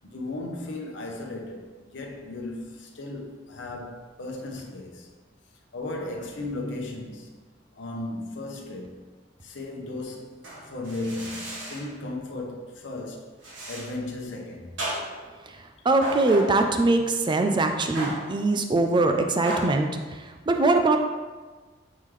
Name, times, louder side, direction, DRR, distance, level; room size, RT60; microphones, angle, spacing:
voice 1, 0.1-5.1 5.7-7.3 7.8-9.0 9.4-10.4 10.7-13.3 13.7-14.8, left 2 dB, 70° left, 0.9 m, -35 dB
sound 1, 10.4-11.9 13.4-13.9 14.8-15.3 16.0-16.7 17.9-18.4 19.5-19.8, right 1 dB, 85° right, 1.4 m, -34 dB
voice 2, 15.8-19.9 20.5-21.0, right 2 dB, 25° right, 0.4 m, -22 dB
8.2 x 3.7 x 3.2 m
head